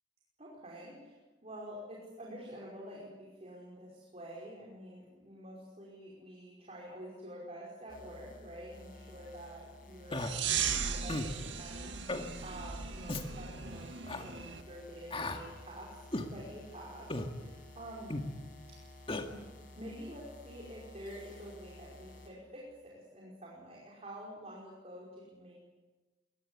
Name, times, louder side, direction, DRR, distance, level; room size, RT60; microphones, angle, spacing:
voice 1, 0.4-15.9 16.3-18.3 18.7-18.8 19.3-25.6, equal, 35° right, -3 dB, 5.3 m, -48 dB
sound 1, 7.9-22.3, left 2 dB, 50° left, 5.9 m, -54 dB
Human voice, 10.1-10.3 11.1-11.3 12.1-12.3 13.1-13.3 14.1-14.2 15.1-15.4 16.1-16.3 17.1-17.3 18.1-18.3 19.1-19.2, left 2 dB, 30° left, 2.0 m, -35 dB
sound 2, 10.2-14.6, right 7 dB, 80° right, 2.0 m, -37 dB
22.0 x 22.0 x 9.9 m, 1.2 s
head